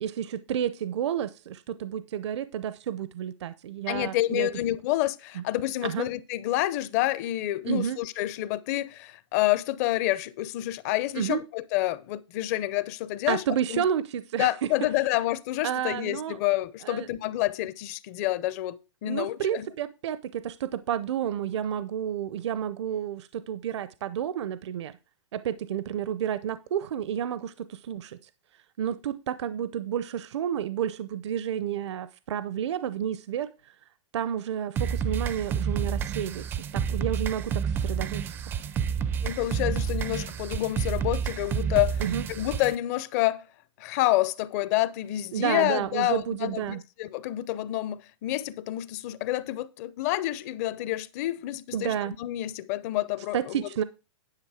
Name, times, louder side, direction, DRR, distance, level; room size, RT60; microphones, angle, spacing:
voice 1, 0.0-4.5 5.4-5.5 5.8-6.1 7.7-8.0 11.2-11.4 13.3-14.7 15.6-16.4 16.8-17.1 19.1-25.0 25.3-28.2 28.8-33.5 34.1-38.3 42.0-42.3 45.3-46.8 51.7-52.1 53.3-53.8, right 9 dB, 65° right, 0.6 m, -30 dB
voice 2, 3.9-13.4 13.7-13.8 14.4-19.7 39.2-43.4 43.8-53.7, left 16 dB, 30° left, 0.6 m, -28 dB
sound 1, 34.8-42.7, right 7 dB, 15° right, 0.4 m, -29 dB
10.5 x 6.2 x 4.8 m
hypercardioid pair, 160°, 16 cm